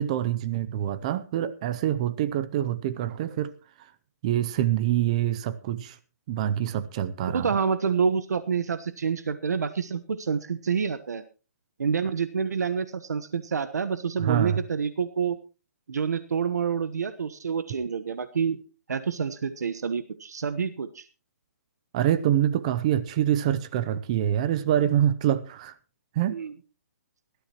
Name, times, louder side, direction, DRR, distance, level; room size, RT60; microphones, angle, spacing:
voice 1, 0.0-3.5 4.2-6.0 6.3-7.5 14.2-14.6 21.9-25.7 26.2-26.4, right 11 dB, 25° right, 0.5 m, -25 dB
voice 2, 7.2-11.2 11.8-15.4 15.9-18.6 18.9-21.0 26.3-26.5, right 6 dB, 75° right, 1.2 m, -28 dB
19.5 x 13.0 x 3.0 m
hypercardioid pair, 170°, 9 cm